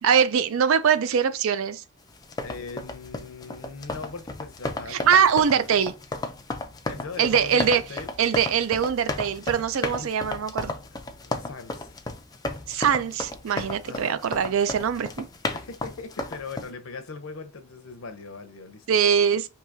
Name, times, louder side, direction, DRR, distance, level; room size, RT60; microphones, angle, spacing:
voice 1, 0.0-1.8 4.9-5.9 7.2-7.8 8.2-10.7 12.7-15.2 18.9-19.5, right 7 dB, 65° right, 0.4 m, -22 dB
sound 1, 2.1-16.7, left 2 dB, 15° left, 0.3 m, -34 dB
voice 2, 2.4-5.2 5.4-5.7 6.9-8.1 9.9-10.1 10.9-12.0 13.9-14.2 15.5-19.0, left 4 dB, 65° left, 0.6 m, -40 dB
4.6 x 2.7 x 2.6 m
head